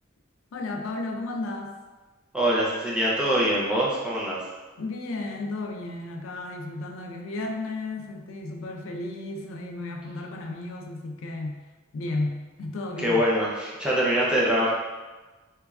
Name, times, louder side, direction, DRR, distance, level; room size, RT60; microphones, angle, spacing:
voice 1, 0.5-1.8 4.8-11.6 11.9-13.3, left 2 dB, 70° left, 3 dB, 0.3 m, -33 dB
voice 2, 2.3-4.4 13.0-14.7, equal, 5° right, -7 dB, 0.4 m, -24 dB
3.0 x 2.3 x 2.3 m, 1.2 s
head